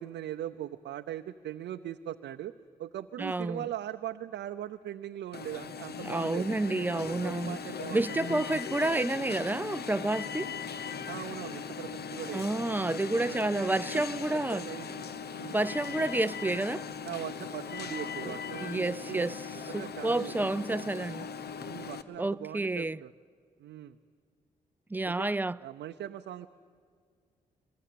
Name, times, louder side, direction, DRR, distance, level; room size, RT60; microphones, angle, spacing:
voice 1, 0.0-2.5 2.8-8.0 8.3-8.4 11.1-12.5 13.1-15.0 15.3-15.6 17.0-19.3 19.7-20.8 21.6-23.1 23.6-24.0 25.0-25.3 25.6-26.5, right 12 dB, 85° right, 0.6 m, -40 dB
voice 2, 3.2-3.7 6.0-7.6 7.9-10.5 12.3-14.7 15.5-16.9 18.2-19.4 19.7-21.3 22.2-23.0 24.9-25.6, right 2 dB, 10° right, 0.5 m, -30 dB
Alarm, 5.3-22.0, left 6 dB, 65° left, 1.1 m, -39 dB
24.0 x 21.5 x 8.6 m
supercardioid pair, 45°, 18 cm